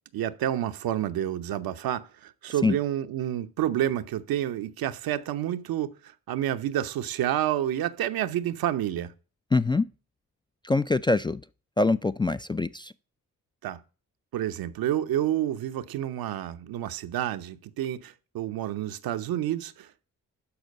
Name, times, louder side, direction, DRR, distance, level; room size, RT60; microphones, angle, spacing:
voice 1, 0.1-6.0 6.3-9.1 13.6-13.8 14.3-20.1, right 11 dB, 70° right, 0.8 m, -29 dB
voice 2, 9.5-9.9 10.6-11.4 11.8-12.9, left 3 dB, 15° left, 0.4 m, -24 dB
12.0 x 4.5 x 5.3 m
supercardioid pair, 55°, 37 cm